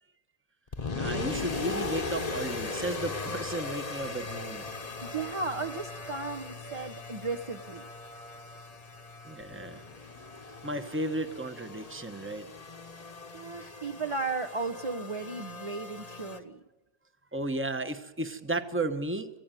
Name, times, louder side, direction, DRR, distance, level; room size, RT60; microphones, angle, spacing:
sound 1, 0.7-16.4, left 3 dB, 30° left, 1.1 m, -38 dB
voice 1, 1.0-4.7 9.2-9.8 10.6-12.5 17.3-19.4, right 2 dB, 10° right, 8 dB, 0.8 m, -34 dB
voice 2, 5.0-7.8 13.3-16.6, right 3 dB, 35° right, 2 dB, 0.5 m, -35 dB
27.0 x 16.0 x 9.1 m, 1.1 s
omnidirectional pair, 1.7 m